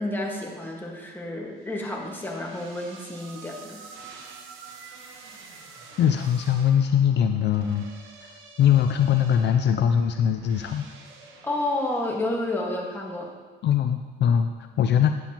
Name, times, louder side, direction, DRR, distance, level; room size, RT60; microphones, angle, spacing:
voice 1, 0.0-3.8 11.4-13.3, left 1 dB, 10° left, -1 dB, 1.5 m, -30 dB
sound 1, 1.6-12.9, right 4 dB, 85° right, 0.9 m, -47 dB
voice 2, 6.0-7.9 8.2-10.9 13.6-15.1, left 9 dB, 60° left, 7 dB, 0.4 m, -22 dB
8.6 x 7.8 x 2.9 m, 1.3 s
cardioid pair, 90°, 20 cm